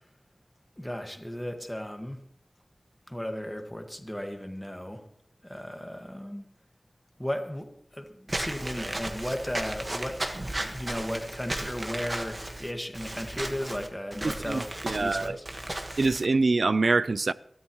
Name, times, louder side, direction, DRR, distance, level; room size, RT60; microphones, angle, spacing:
voice 1, 0.8-2.2 3.1-5.0 5.4-6.5 7.2-10.2 10.6-14.7 15.0-15.5, equal, 5° left, 1.7 m, -35 dB
Walk footsteps / Squeak, 8.3-16.3, right 1 dB, 35° right, 1.5 m, -35 dB
voice 2, 14.2-15.4 16.0-17.3, right 3 dB, 65° right, 0.4 m, -25 dB
22.5 x 13.0 x 3.1 m
wide cardioid pair, 75°, 0 cm